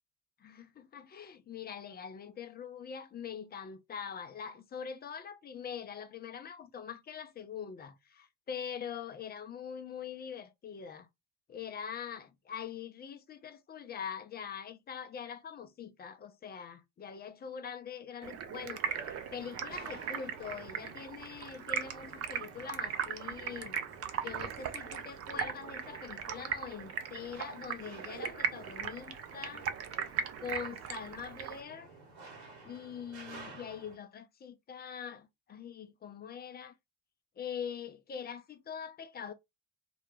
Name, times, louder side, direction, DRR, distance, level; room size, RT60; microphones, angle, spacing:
voice 1, 0.4-11.1 11.5-23.8 24.2-29.7 30.4-31.9 32.6-36.7 37.4-39.3, left 7 dB, 25° left, 0.4 m, -43 dB
Stream, 18.2-31.6, right 7 dB, 35° right, 0.5 m, -38 dB
sound 1, 18.8-34.0, right 3 dB, 70° right, 1.0 m, -53 dB
2.2 x 2.0 x 3.0 m
figure-of-eight pair, 50°, 43 cm